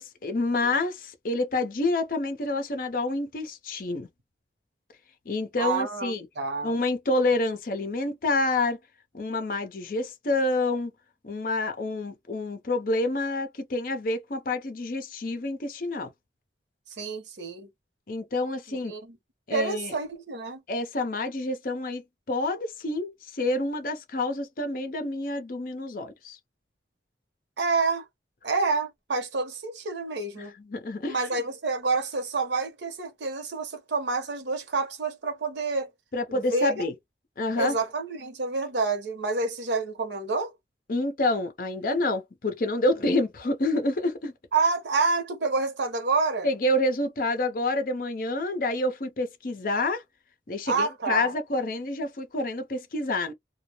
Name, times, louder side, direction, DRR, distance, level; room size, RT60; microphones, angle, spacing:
voice 1, 0.0-4.1 5.3-6.3 6.6-8.8 9.1-10.9 11.2-16.1 18.1-18.9 19.5-19.9 20.7-26.4 30.4-31.2 36.1-36.9 37.4-37.8 40.9-44.3 46.4-50.0 50.5-53.3, left 2 dB, 50° left, 0.6 m, -28 dB
voice 2, 5.6-6.8 17.0-17.7 18.7-19.2 19.5-20.6 27.6-28.0 28.4-30.5 31.1-35.9 36.3-36.9 37.6-40.5 44.5-46.5 50.7-51.3, right 4 dB, 85° right, 0.8 m, -28 dB
2.2 x 2.0 x 2.9 m
head